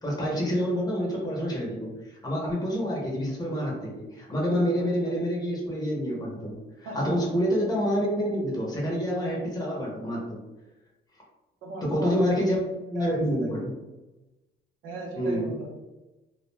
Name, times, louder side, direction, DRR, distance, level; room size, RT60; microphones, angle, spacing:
voice 1, 0.0-10.4 11.8-12.6 12.9-13.7 15.2-15.6, equal, 20° left, -3 dB, 0.8 m, -27 dB
voice 2, 11.6-12.4 12.9-13.5 14.8-15.7, right 1 dB, 90° right, 0 dB, 0.7 m, -37 dB
2.2 x 2.1 x 3.2 m, 1.1 s
cardioid pair, 90°, 20 cm